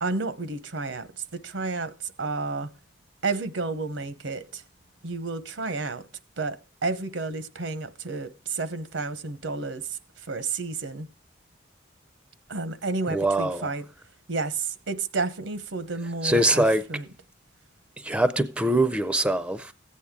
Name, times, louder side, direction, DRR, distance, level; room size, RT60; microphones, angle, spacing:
voice 1, 0.0-2.7 3.2-4.6 5.0-6.1 6.4-11.1 12.5-13.8 14.3-16.6 16.9-17.1, right 3 dB, 85° right, 0.9 m, -31 dB
voice 2, 13.1-13.7 16.2-16.8 18.0-19.7, right 1 dB, 5° right, 0.4 m, -23 dB
14.5 x 8.6 x 3.6 m
head